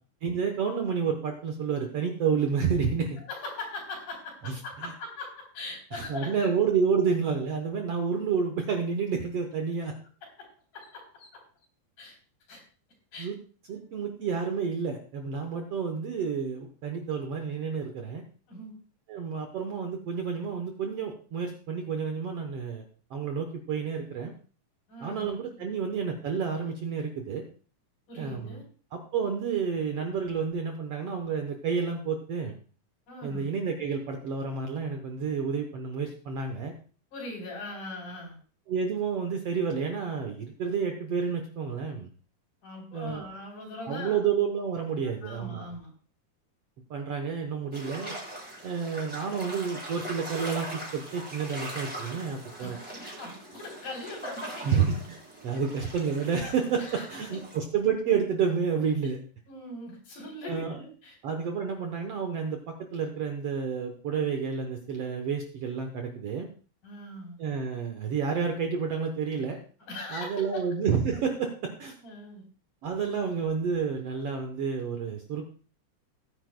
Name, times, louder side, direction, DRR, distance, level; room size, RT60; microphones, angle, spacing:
voice 1, 0.2-3.2 4.5-4.9 5.9-10.0 13.2-13.4 13.7-18.2 19.1-22.8 23.1-24.3 25.0-27.4 28.2-28.6 28.9-32.5 33.2-36.7 38.7-42.1 42.9-43.2 43.9-45.7 46.9-48.1 48.6-52.8 54.6-55.2 55.4-59.2 60.4-60.8 61.2-66.5 67.4-69.6 70.1-71.9 72.8-75.4, right 6 dB, 65° right, 4 dB, 1.6 m, -30 dB
voice 2, 3.3-6.6 10.7-11.3 12.0-12.1 12.5-12.6 13.1-13.3 13.7-13.8 15.4-15.5 18.5-18.7 24.9-25.3 28.1-28.6 33.1-33.5 37.1-38.4 42.6-44.2 45.0-45.9 52.6-54.8 56.8-57.4 59.5-61.1 66.8-67.4 69.9-70.7 72.0-72.4, left 2 dB, 65° left, 0 dB, 4.9 m, -41 dB
sound 1, 47.7-57.6, right 1 dB, 5° right, 4.0 m, -41 dB
18.5 x 9.9 x 2.2 m, 0.40 s
omnidirectional pair, 3.8 m